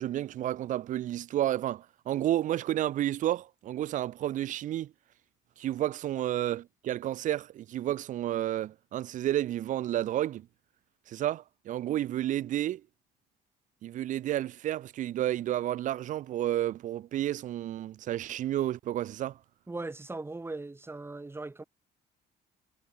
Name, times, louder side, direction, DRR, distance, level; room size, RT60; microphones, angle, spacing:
voice 1, 0.0-4.9 5.6-10.5 11.1-12.8 13.8-19.4, right 13 dB, 50° right, 0.4 m, -31 dB
voice 2, 19.7-21.6, right 2 dB, 15° right, 2.7 m, -39 dB
cardioid pair, 110°, 17 cm